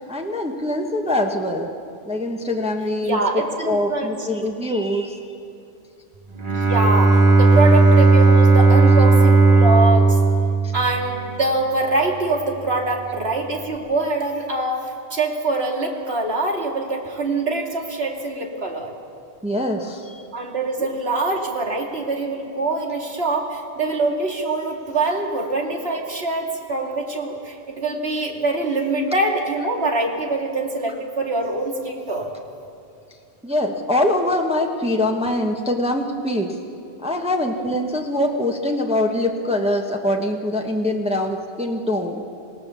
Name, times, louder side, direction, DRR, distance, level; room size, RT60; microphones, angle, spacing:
voice 1, 0.1-1.7 2.0-5.2 10.6-10.7 19.4-20.2 33.4-36.6 37.0-42.2, left 1 dB, 5° right, 1 dB, 1.1 m, -23 dB
voice 2, 3.0-4.3 6.5-10.2 10.7-18.9 20.3-32.3, right 2 dB, 70° right, 0 dB, 2.6 m, -24 dB
Bowed string instrument, 6.4-11.3, right 3 dB, 50° right, 1.8 m, -14 dB
26.0 x 17.5 x 7.0 m, 2.6 s
omnidirectional pair, 1.1 m